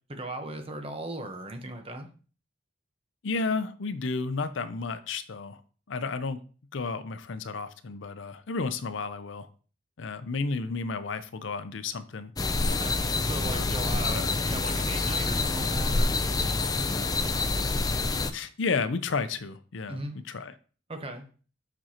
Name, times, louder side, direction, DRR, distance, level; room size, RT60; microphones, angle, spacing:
voice 1, 0.1-2.1 12.7-13.0 13.3-16.2 19.9-20.2 20.9-21.3, right 2 dB, 30° right, 5 dB, 1.0 m, -38 dB
voice 2, 3.2-5.6 5.9-6.4 6.7-9.5 10.0-12.3 13.4-13.7 14.0-14.3 18.3-20.0 20.3-20.5, left 4 dB, 75° left, 12 dB, 0.6 m, -32 dB
sound 1, 12.4-18.3, left 3 dB, 20° left, 0.4 m, -27 dB
7.4 x 6.1 x 2.9 m, 0.39 s
head